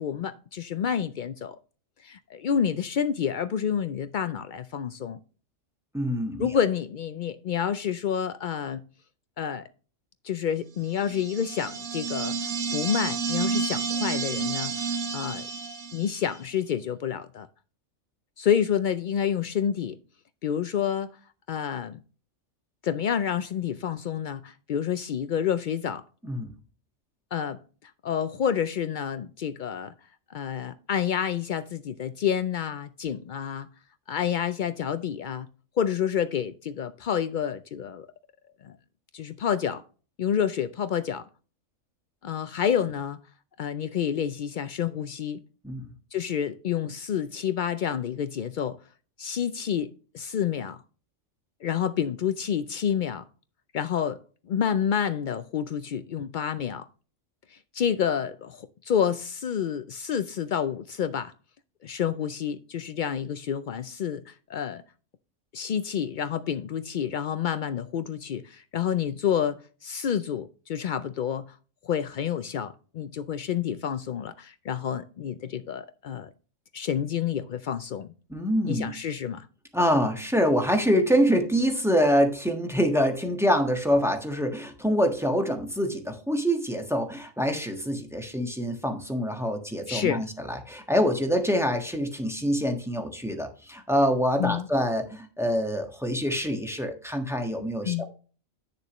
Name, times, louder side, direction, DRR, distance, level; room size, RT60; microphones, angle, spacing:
voice 1, 0.0-1.6 2.0-5.2 6.4-8.8 9.4-9.7 10.2-14.9 15.1-15.4 15.9-17.5 18.4-20.0 20.4-21.1 21.5-22.0 22.8-26.0 27.3-27.6 28.0-29.9 30.3-33.7 34.1-35.5 35.8-38.1 38.6-38.8 39.1-39.8 40.2-41.2 42.2-43.2 43.6-45.4 46.1-48.8 49.2-50.8 51.6-53.2 53.7-54.2 54.5-56.9 57.5-61.3 61.8-64.8 65.5-71.5 71.8-76.3 76.7-78.1 78.7-79.5 89.9-90.2 94.4-94.7 97.8-98.0, left 8 dB, 90° left, 0.4 m, -29 dB
voice 2, 5.9-6.5 26.2-26.5 45.6-45.9 78.3-78.9 79.7-98.0, equal, ahead, 1.2 m, -25 dB
sound 1, 11.0-16.4, right 5 dB, 85° right, 1.5 m, -30 dB
9.7 x 6.7 x 3.0 m
omnidirectional pair, 1.4 m